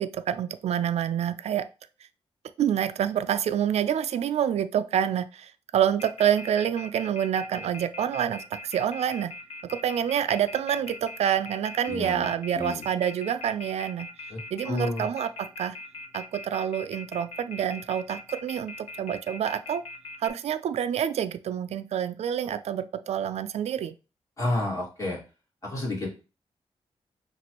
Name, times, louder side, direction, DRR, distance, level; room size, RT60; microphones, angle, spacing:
voice 1, 0.0-1.6 2.6-9.3 9.7-14.1 14.5-15.8 16.1-19.8 20.2-23.9, right 9 dB, 75° right, 12 dB, 0.4 m, -27 dB
Telephone, 6.0-20.3, left 3 dB, 65° left, 0.7 m, -40 dB
voice 2, 11.9-12.3 12.6-12.8 14.3-14.4 14.6-15.1 24.4-25.2 25.6-26.1, left 2 dB, 30° left, -4 dB, 2.2 m, -30 dB
5.9 x 2.5 x 2.9 m, 0.32 s
cardioid pair, 105°, 11 cm